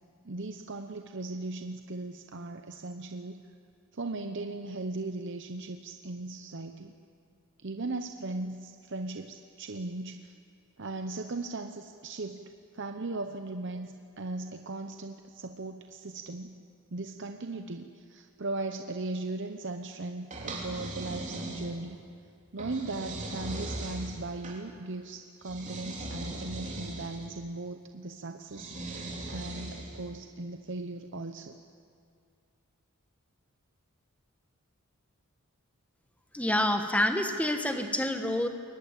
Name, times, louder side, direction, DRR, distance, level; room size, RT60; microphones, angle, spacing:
voice 1, 0.2-3.4 3.9-6.9 7.6-10.3 10.8-16.5 16.9-22.0 22.5-31.6, right 2 dB, 55° right, 6 dB, 0.8 m, -38 dB
sound 1, 20.3-22.0 22.6-24.6 25.4-27.3 28.5-30.1, right 2 dB, 35° right, 3.4 m, -39 dB
voice 2, 36.3-38.5, left 1 dB, 5° left, 6 dB, 1.4 m, -27 dB
22.5 x 19.0 x 9.2 m, 2.3 s
head